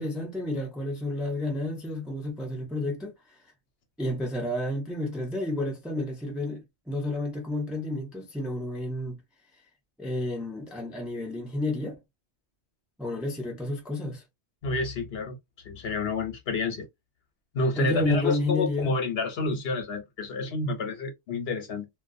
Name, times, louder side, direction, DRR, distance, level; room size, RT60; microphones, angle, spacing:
voice 1, 0.0-3.1 4.0-9.2 10.0-12.0 13.0-14.2 17.8-18.9, left 1 dB, ahead, 0.5 m, -31 dB
voice 2, 14.6-15.4 15.6-16.9 17.5-21.9, left 3 dB, 65° left, 1.0 m, -29 dB
2.4 x 2.3 x 2.5 m
omnidirectional pair, 1.2 m